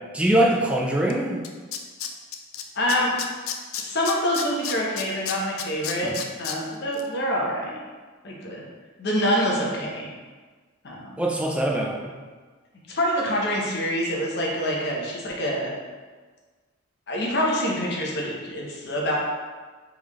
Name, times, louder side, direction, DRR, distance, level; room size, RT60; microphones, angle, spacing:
voice 1, 0.1-1.4 6.0-6.2 11.2-12.1, right 1 dB, 5° right, -1 dB, 0.4 m, -23 dB
Tools, 1.1-1.2 1.4-2.6 2.9-6.6 6.9-7.0, left 9 dB, 80° left, 0.4 m, -31 dB
voice 2, 2.8-3.1 3.8-6.1 6.4-7.8 8.2-8.6 9.0-10.1 10.8-11.0 12.9-15.7 17.1-19.2, equal, 55° left, -3 dB, 0.9 m, -26 dB
3.8 x 3.5 x 3.1 m, 1.4 s
head